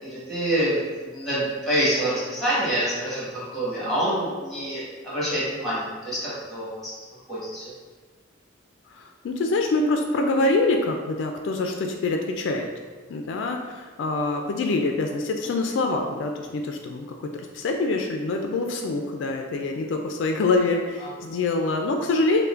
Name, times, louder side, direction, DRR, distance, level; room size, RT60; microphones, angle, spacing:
voice 1, 0.0-6.9 7.3-7.6 21.0-21.1, right 1 dB, ahead, -9 dB, 1.2 m, -26 dB
voice 2, 9.0-12.7 13.1-22.4, left 2 dB, 70° left, 3 dB, 0.3 m, -25 dB
5.5 x 2.1 x 2.4 m, 1.4 s
head